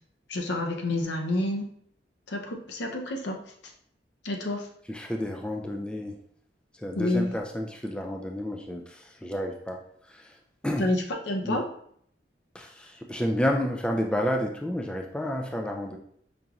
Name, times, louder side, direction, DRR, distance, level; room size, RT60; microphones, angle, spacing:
voice 1, 0.3-1.7 2.3-3.5 4.2-4.7 6.9-7.3 10.8-11.7, left 1 dB, 70° left, 2 dB, 0.6 m, -29 dB
voice 2, 4.9-6.2 6.8-9.8 10.1-10.3 10.6-10.9 11.4-11.6 12.5-16.0, equal, 5° left, 2 dB, 0.3 m, -30 dB
5.1 x 2.9 x 2.4 m, 0.66 s
head